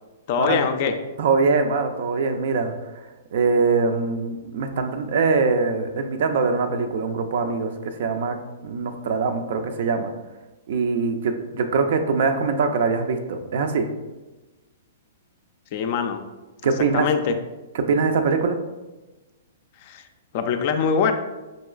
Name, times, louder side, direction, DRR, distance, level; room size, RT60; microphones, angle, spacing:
voice 1, 0.3-1.0 15.7-16.2 16.9-17.4 19.8-20.1 20.3-21.1, left 6 dB, 45° left, 7 dB, 0.3 m, -23 dB
voice 2, 1.2-2.7 3.3-8.4 8.6-10.1 10.7-13.9 16.6-17.1 17.9-18.6, right 4 dB, 55° right, 7 dB, 0.4 m, -22 dB
5.2 x 3.0 x 2.3 m, 1.1 s
figure-of-eight pair, 110°, 0 cm